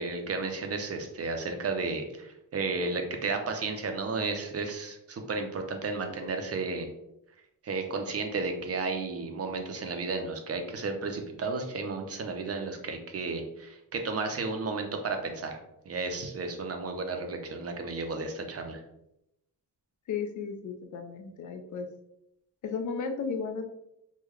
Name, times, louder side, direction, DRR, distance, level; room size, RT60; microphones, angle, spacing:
voice 1, 0.0-6.9 7.6-15.6 15.9-18.8, right 3 dB, 40° right, 5 dB, 0.5 m, -33 dB
voice 2, 20.1-21.9 22.6-23.7, left 5 dB, 50° left, 6 dB, 0.5 m, -34 dB
3.6 x 2.2 x 3.1 m, 0.82 s
wide cardioid pair, 160°, 38 cm